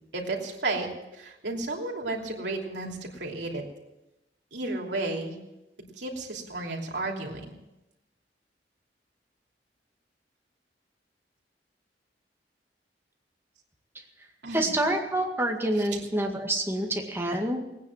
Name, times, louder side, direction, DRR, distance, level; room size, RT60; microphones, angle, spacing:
voice 1, 0.1-0.9 1.1-3.6 4.5-5.3 6.0-7.5 14.4-14.7 15.7-16.0, right 2 dB, 75° right, 0 dB, 3.0 m, -33 dB
voice 2, 14.5-17.6, right 1 dB, 15° right, 1 dB, 2.0 m, -27 dB
19.0 x 9.4 x 7.3 m, 0.96 s
head